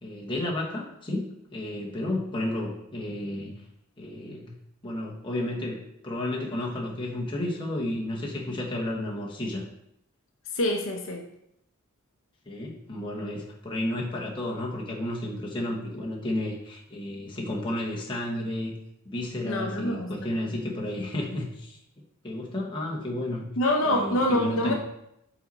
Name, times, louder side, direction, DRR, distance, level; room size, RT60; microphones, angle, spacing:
voice 1, 0.0-3.5 4.0-4.5 4.8-9.6 12.5-18.8 19.0-21.8 22.2-23.5 23.8-24.7, left 1 dB, 20° left, -3 dB, 1.0 m, -32 dB
voice 2, 10.5-11.2 19.4-20.3 23.6-24.7, left 1 dB, 60° left, 2 dB, 0.7 m, -26 dB
5.7 x 4.0 x 4.1 m, 0.80 s
head